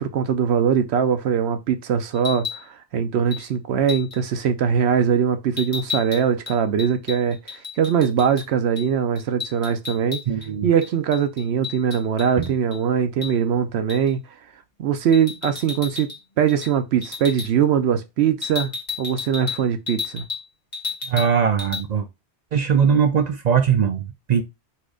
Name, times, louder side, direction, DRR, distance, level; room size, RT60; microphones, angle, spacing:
voice 1, 0.0-10.2 10.6-14.2 14.8-16.1 16.4-18.7 19.0-20.2, right 7 dB, 75° right, 0.8 m, -21 dB
sound 1, 2.1-2.6 3.3-3.5 3.9-4.2 5.6-8.5 8.7-8.9 9.1-10.5 10.8-12.8 13.2-13.3 13.9-14.1 15.1-16.2 16.5-16.7 17.0-17.5 18.4-20.4 20.7-21.3 21.6-21.8, left 5 dB, 30° left, 1.3 m, -32 dB
voice 2, 10.3-10.7 12.4-12.5 21.1-22.1 22.5-24.4, right 7 dB, 55° right, 0.5 m, -20 dB
4.3 x 2.4 x 4.8 m
omnidirectional pair, 1.1 m